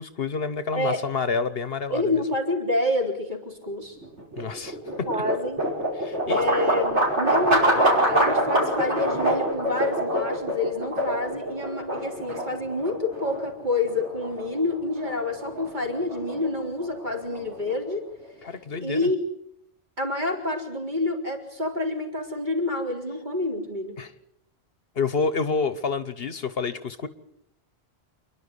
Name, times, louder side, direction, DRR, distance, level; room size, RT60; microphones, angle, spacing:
voice 1, 0.0-2.2 4.4-4.8 6.0-6.5 18.4-19.1 24.0-24.1 25.0-27.1, left 5 dB, 60° left, 13 dB, 1.3 m, -28 dB
voice 2, 1.9-4.0 5.1-5.6 6.3-18.1 18.8-19.2 20.0-24.0, left 2 dB, 40° right, 1 dB, 4.1 m, -28 dB
sound 1, 4.0-18.1, right 1 dB, 90° right, 5.7 m, -26 dB
27.5 x 11.5 x 9.8 m, 0.77 s
omnidirectional pair, 1.1 m